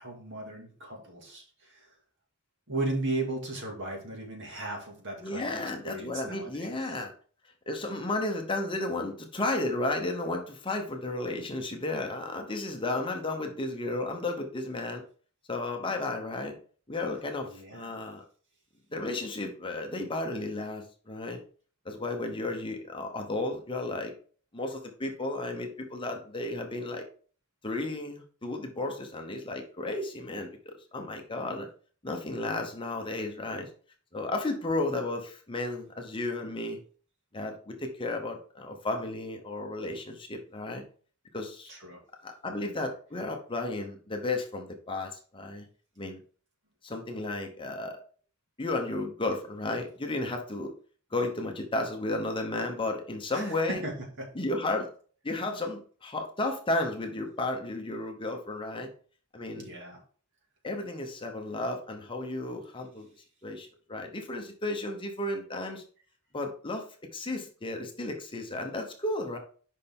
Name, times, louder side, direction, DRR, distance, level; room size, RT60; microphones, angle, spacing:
voice 1, 0.0-1.9 2.7-5.5 5.8-7.0 17.4-18.0 41.7-42.0 53.3-54.3 59.6-60.0, right 2 dB, 55° right, 0 dB, 2.2 m, -36 dB
voice 2, 5.2-7.1 7.7-15.0 15.5-16.5 16.9-18.2 18.9-21.4 21.8-24.1 24.5-27.0 27.6-31.7 32.0-33.7 34.1-36.8 37.3-40.8 41.3-41.7 42.2-45.6 46.0-46.2 46.8-48.0 48.6-50.7 51.1-53.8 54.3-54.9 55.2-58.9 59.3-59.6 60.6-63.1 63.4-65.8 66.3-66.9 67.1-69.4, left 2 dB, 25° left, 3 dB, 0.9 m, -33 dB
6.5 x 5.5 x 3.6 m, 0.43 s
head